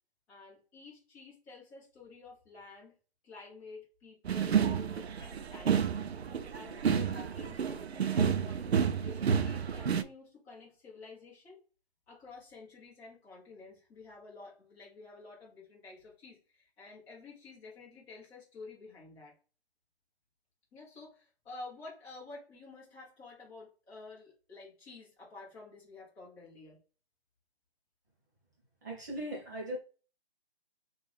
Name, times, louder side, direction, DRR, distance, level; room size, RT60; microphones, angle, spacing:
voice 1, 0.3-3.0 3.2-5.9 6.5-11.6 12.1-19.3 20.7-26.8, left 3 dB, 10° left, 1.2 m, -51 dB
sound 1, 4.3-10.0, right 7 dB, 80° right, 0.5 m, -30 dB
voice 2, 28.8-29.8, right 1 dB, 20° right, 0.8 m, -38 dB
3.4 x 2.5 x 3.5 m
hypercardioid pair, 160°, 31 cm